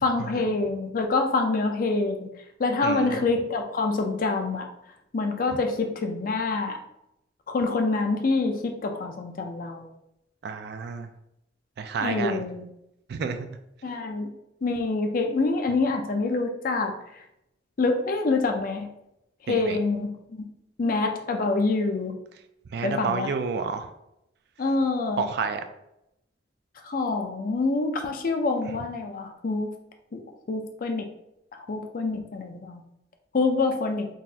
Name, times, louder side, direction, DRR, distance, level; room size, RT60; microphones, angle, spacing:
voice 1, 0.0-2.3 2.6-4.7 5.1-6.8 7.5-9.9 12.0-12.6 13.8-14.3 14.6-16.9 17.8-18.9 19.5-20.1 20.8-22.1 22.8-23.3 24.6-25.2 26.8-29.7 30.1-30.2 30.5-31.0 31.7-32.8 33.3-34.1, left 3 dB, 50° left, 5 dB, 0.4 m, -26 dB
voice 2, 2.8-3.2 10.4-11.1 11.8-12.4 13.1-13.6 19.5-19.8 22.7-23.9 25.2-25.6, right 5 dB, 60° right, 8 dB, 0.3 m, -30 dB
3.9 x 2.5 x 2.7 m, 0.83 s
head